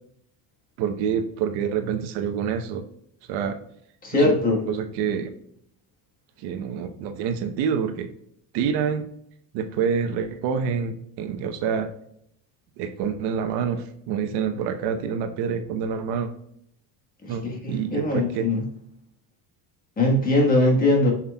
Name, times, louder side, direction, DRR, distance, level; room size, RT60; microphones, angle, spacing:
voice 1, 0.8-2.8 3.3-3.6 4.1-4.4 4.7-5.3 6.4-8.1 8.5-9.0 9.5-11.9 12.8-16.3 17.3-18.5, right 7 dB, 70° right, 8 dB, 0.9 m, -27 dB
voice 2, 4.0-4.6 17.2-18.6 20.0-21.1, left 2 dB, 20° left, 0 dB, 1.4 m, -21 dB
7.5 x 5.9 x 2.2 m, 0.73 s
cardioid pair, 175°, 42 cm